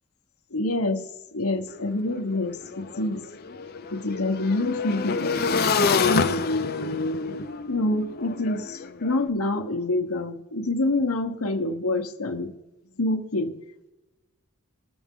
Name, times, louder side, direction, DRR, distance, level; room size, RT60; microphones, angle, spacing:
voice 1, 0.5-1.0 1.3-3.2 3.9-6.4 7.7-12.5 13.0-13.6, left 2 dB, 70° left, 4 dB, 1.0 m, -27 dB
Motorcycle / Engine, 1.7-1.8 2.0-9.2, left 5 dB, 45° left, 0.6 m, -27 dB
20.0 x 7.1 x 3.7 m, 1.1 s
head